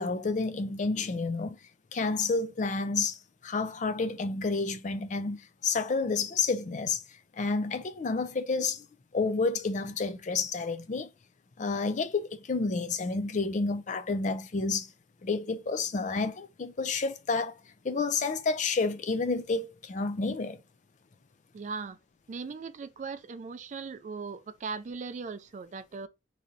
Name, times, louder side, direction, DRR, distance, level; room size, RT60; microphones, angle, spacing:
voice 1, 0.0-1.6 1.9-7.0 7.3-8.9 9.1-11.1 11.6-14.9 15.2-17.5 17.8-20.6, left 4 dB, 45° left, 0.4 m, -30 dB
voice 2, 21.5-22.0 22.3-26.1, right 4 dB, 45° right, 0.4 m, -38 dB
3.1 x 2.7 x 3.8 m
head